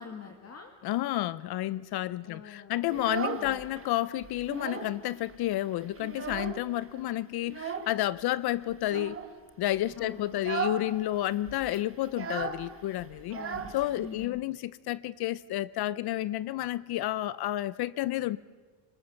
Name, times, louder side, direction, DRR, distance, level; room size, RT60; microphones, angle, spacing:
voice 1, 0.0-0.7 2.2-3.0 3.3-3.6 10.0-10.7 13.3-13.7 13.9-14.4, left 6 dB, 30° left, 3 dB, 2.0 m, -44 dB
voice 2, 0.8-9.2 9.6-13.4 13.7-18.4, left 14 dB, 55° left, 19 dB, 0.6 m, -31 dB
Child speech kid speaking, 2.8-3.9 4.2-5.0 5.3-5.4 5.7-6.8 7.5-8.0 8.8-9.3 9.7-9.9 10.3-10.9 11.1-11.2 11.5-14.3, right 6 dB, 25° right, 1.7 m, -36 dB
25.0 x 20.0 x 7.1 m, 1.5 s
cardioid pair, 120°, 47 cm